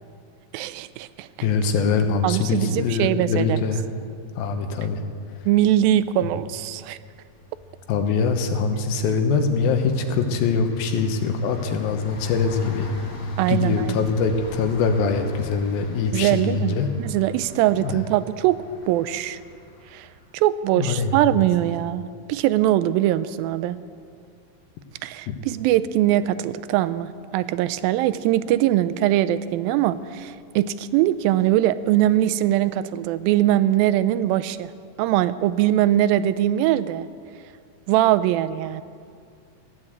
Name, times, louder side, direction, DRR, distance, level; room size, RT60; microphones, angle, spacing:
voice 1, 0.5-1.3 2.2-3.6 5.5-7.0 13.4-14.1 16.1-18.6 18.9-19.4 19.9-20.1 20.3-23.8 25.0-34.7 35.0-37.1 37.9-38.8, right 13 dB, 85° right, 15 dB, 2.3 m, -22 dB
voice 2, 1.4-3.8 4.4-5.0 7.9-12.9 13.5-16.9 17.8-18.0 20.8-21.1, left 5 dB, 90° left, 6 dB, 2.9 m, -23 dB
sound 1, 6.1-6.5 6.8-19.9, left 3 dB, 50° left, 2.7 m, -37 dB
15.5 x 9.7 x 7.9 m, 2.2 s
omnidirectional pair, 4.1 m